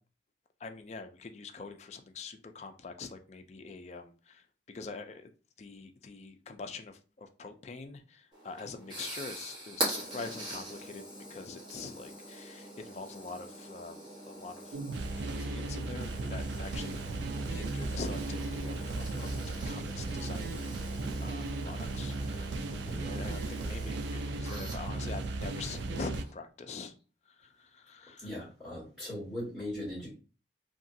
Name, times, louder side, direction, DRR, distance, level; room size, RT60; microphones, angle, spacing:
voice 1, 0.6-5.3 5.6-11.0 11.3-14.0 14.3-14.8 15.2-17.0 17.5-19.3 19.7-20.5 21.2-26.9 27.4-28.3, left 4 dB, 35° left, 0.3 m, -44 dB
sound 1, 8.3-26.3, right 1 dB, 25° right, 1.1 m, -43 dB
sound 2, 14.7-26.2, right 2 dB, 70° right, 0.3 m, -36 dB
voice 2, 28.2-30.1, left 1 dB, 5° right, 1.4 m, -39 dB
2.8 x 2.4 x 2.6 m
head